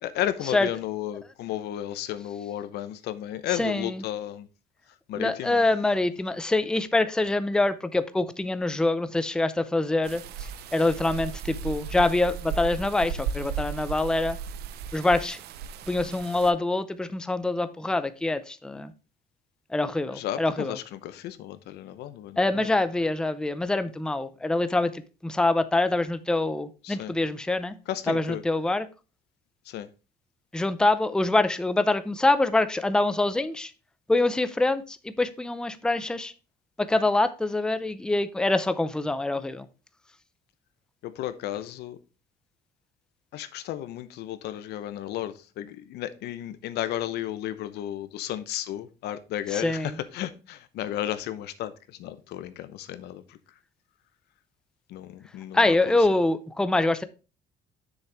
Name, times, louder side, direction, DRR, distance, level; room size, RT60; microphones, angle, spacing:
voice 1, 0.0-4.5 5.1-5.6 20.1-22.7 26.8-27.1 27.9-28.4 29.7-29.9 41.0-42.0 43.3-53.4 54.9-56.0, left 12 dB, 80° left, 0.8 m, -33 dB
voice 2, 3.6-4.0 5.2-14.4 14.9-15.4 15.9-18.9 19.7-20.8 22.4-27.8 28.1-28.9 30.5-33.7 34.1-36.3 36.8-39.7 49.5-49.9 55.5-57.0, left 2 dB, 5° left, 0.5 m, -25 dB
sound 1, 10.0-16.5, right 7 dB, 75° right, 0.6 m, -35 dB
7.4 x 6.5 x 3.4 m
cardioid pair, 110°, 17 cm